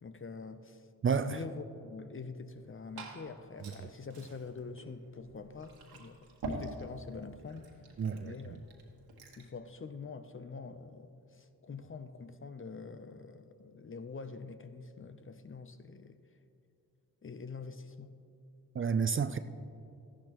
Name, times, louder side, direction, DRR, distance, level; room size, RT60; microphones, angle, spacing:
voice 1, 0.0-0.9 1.2-7.7 8.2-8.6 9.4-16.2 17.2-18.1, left 4 dB, 35° left, 0.7 m, -45 dB
voice 2, 1.0-1.4 3.6-3.7 8.0-8.6 18.7-19.4, right 6 dB, 35° right, 0.4 m, -31 dB
Liquid, 2.5-9.5, right 2 dB, 80° right, 1.5 m, -47 dB
13.5 x 11.5 x 3.1 m
cardioid pair, 50°, 37 cm